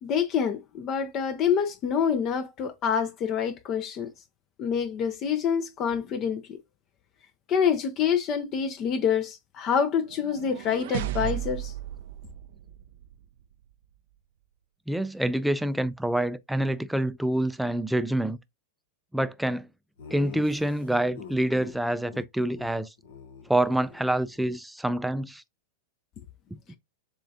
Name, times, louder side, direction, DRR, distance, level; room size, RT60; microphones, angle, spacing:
voice 1, 0.0-4.1 4.6-6.4 7.5-11.7, left 7 dB, 40° left, 0.7 m, -26 dB
sound 1, 10.1-13.2, right 14 dB, 65° right, 0.4 m, -35 dB
voice 2, 14.9-18.4 19.1-19.7 20.1-22.9 23.5-25.4 26.5-26.6, right 1 dB, 5° right, 0.4 m, -27 dB
Laughter, 20.0-21.8 22.1-22.2 22.5-22.7 23.0-24.6, left 6 dB, 75° left, 1.3 m, -45 dB
7.2 x 2.5 x 2.8 m
hypercardioid pair, 110°, 0 cm